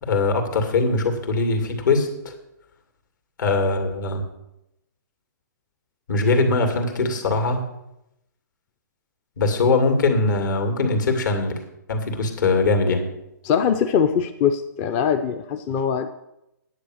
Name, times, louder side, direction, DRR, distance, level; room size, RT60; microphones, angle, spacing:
voice 1, 0.0-2.3 3.4-4.2 6.1-7.6 9.4-11.6 11.9-13.1, left 3 dB, 65° left, 5 dB, 2.6 m, -21 dB
voice 2, 13.4-16.1, left 7 dB, 20° left, 8 dB, 0.5 m, -22 dB
9.9 x 8.7 x 6.4 m, 0.87 s
hypercardioid pair, 155°, 11 cm